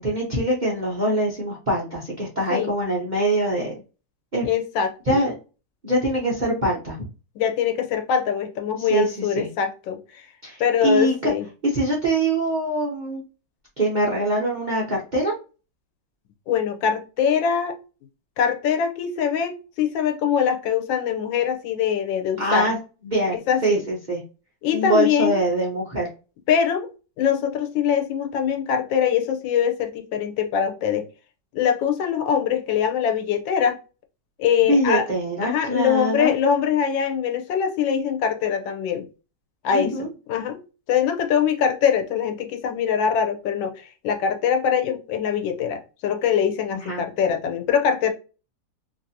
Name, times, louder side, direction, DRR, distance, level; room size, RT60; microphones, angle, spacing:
voice 1, 0.0-3.7 4.3-4.5 5.1-5.3 5.8-7.1 8.8-9.5 10.4-11.3 11.7-13.2 13.8-15.3 22.4-22.8 23.0-23.4 23.6-24.2 24.7-26.1 34.6-36.3 39.7-40.1 46.7-47.0, right 1 dB, 45° right, 0.6 m, -23 dB
voice 2, 4.4-5.2 7.4-10.2 10.6-11.5 16.5-17.7 18.4-22.7 23.5-23.8 24.6-25.4 26.5-26.9 27.2-31.1 31.5-33.8 34.4-35.0 35.4-39.1 39.6-39.9 40.3-40.6 40.9-48.1, left 8 dB, 85° left, 1.4 m, -23 dB
3.1 x 2.6 x 2.6 m
omnidirectional pair, 2.0 m